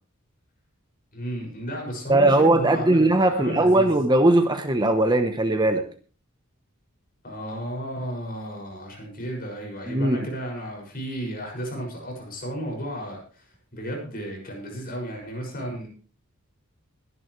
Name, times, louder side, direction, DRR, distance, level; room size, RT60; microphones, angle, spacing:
voice 1, 1.1-3.9 7.2-15.9, right 1 dB, 40° left, 1 dB, 6.4 m, -33 dB
voice 2, 2.1-5.8 9.9-10.2, right 2 dB, 20° right, 7 dB, 1.0 m, -19 dB
21.5 x 11.0 x 3.3 m, 0.40 s
head